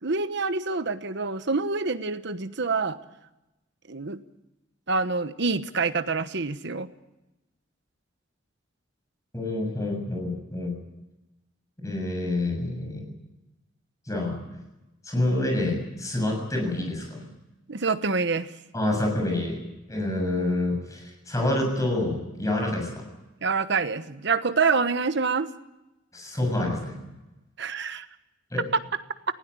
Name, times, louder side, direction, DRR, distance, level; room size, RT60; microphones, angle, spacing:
voice 1, 0.0-3.0 3.9-4.2 4.9-6.9 17.7-18.5 23.4-25.5 27.6-28.1, right 4 dB, 60° right, 11 dB, 1.2 m, -26 dB
voice 2, 9.3-10.8 11.8-13.1 14.1-14.4 15.0-17.3 18.7-23.1 26.1-27.0 28.5-28.6, left 1 dB, 15° left, 2 dB, 7.0 m, -27 dB
19.5 x 16.5 x 9.7 m, 0.99 s
head